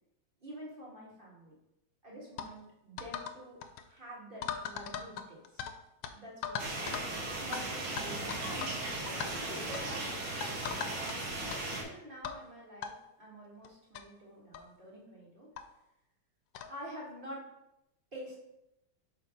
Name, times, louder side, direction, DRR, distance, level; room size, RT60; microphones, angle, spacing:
voice 1, 0.4-1.5 2.0-3.6 3.9-5.6 6.1-6.7 7.4-8.8 9.1-10.1 11.8-15.5 16.7-17.5 18.1-18.4, equal, 25° right, -4 dB, 2.0 m, -47 dB
sound 1, 2.4-2.5 3.0-3.4 3.6-3.8 4.4-5.7 6.0-6.1 6.4-7.1 7.5-7.6 8.0-8.8 9.1-9.3 9.7-9.9 10.4-11.2 11.5-11.6 12.2-12.4 12.8-12.9 13.6-13.7 13.9-14.0 14.5-14.7 15.6-15.7 16.5-16.7, left 8 dB, 75° left, 1.3 m, -39 dB
sound 2, 6.6-11.8, right 2 dB, 80° right, 2.2 m, -37 dB
5.9 x 4.4 x 5.1 m, 0.87 s
omnidirectional pair, 2.2 m